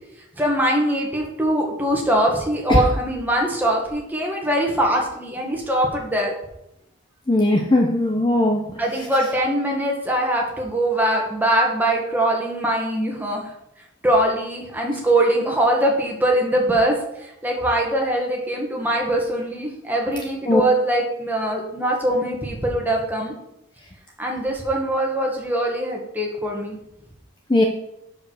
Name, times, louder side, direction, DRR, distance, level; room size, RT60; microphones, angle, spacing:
voice 1, 0.4-6.3 8.8-13.5 14.0-23.3 24.2-26.8, right 1 dB, 10° right, -1 dB, 1.4 m, -22 dB
voice 2, 7.3-8.6 20.5-20.6 27.5-27.6, left 1 dB, 20° left, 2 dB, 0.5 m, -18 dB
6.9 x 4.8 x 6.2 m, 0.84 s
head